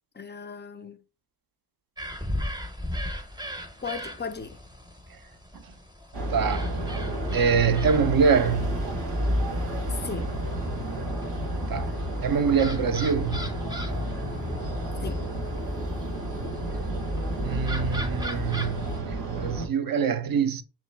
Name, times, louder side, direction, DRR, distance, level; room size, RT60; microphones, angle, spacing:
voice 1, 0.1-1.0 3.8-4.6 9.9-10.3 15.0-15.3, left 5 dB, 25° left, 0.4 m, -36 dB
sound 1, 2.0-19.0, left 1 dB, 10° right, 0.7 m, -36 dB
sound 2, 6.1-19.7, right 1 dB, 80° right, 1.2 m, -31 dB
voice 2, 6.3-6.8 7.3-8.9 11.7-11.9 12.2-13.7 17.4-20.6, right 6 dB, 55° right, 0.5 m, -25 dB
3.8 x 3.1 x 3.2 m
wide cardioid pair, 80°, 42 cm